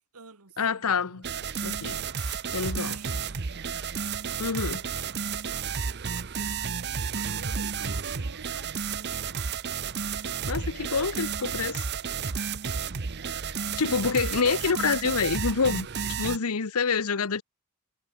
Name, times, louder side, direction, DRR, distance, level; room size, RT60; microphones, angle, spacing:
voice 1, 0.0-1.4 2.8-3.9 4.6-5.3 6.6-9.6 10.4-12.3 13.0-13.8, right 4 dB, 85° right, 2.1 m, -51 dB
voice 2, 0.6-1.2 1.6-3.0 4.4-4.9 10.1-10.2 10.5-11.8 13.8-17.4, left 5 dB, 80° left, 0.9 m, -27 dB
sound 1, 1.2-16.4, right 6 dB, 50° right, 0.8 m, -32 dB
head